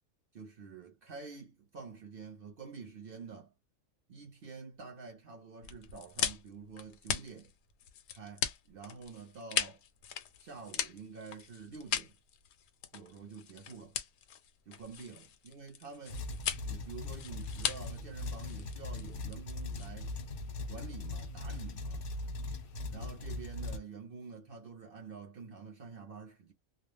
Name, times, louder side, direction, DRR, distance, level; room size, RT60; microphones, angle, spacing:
voice 1, 0.3-3.5 4.1-7.5 8.1-9.8 10.4-12.1 12.9-14.0 14.7-16.2 16.6-20.1 20.7-22.1 22.9-26.5, right 5 dB, 55° right, 0.7 m, -48 dB
sound 1, 5.6-20.3, left 9 dB, 80° left, 1.0 m, -39 dB
sound 2, 16.1-23.8, left 2 dB, 60° left, 0.6 m, -40 dB
2.4 x 2.0 x 3.1 m
omnidirectional pair, 1.4 m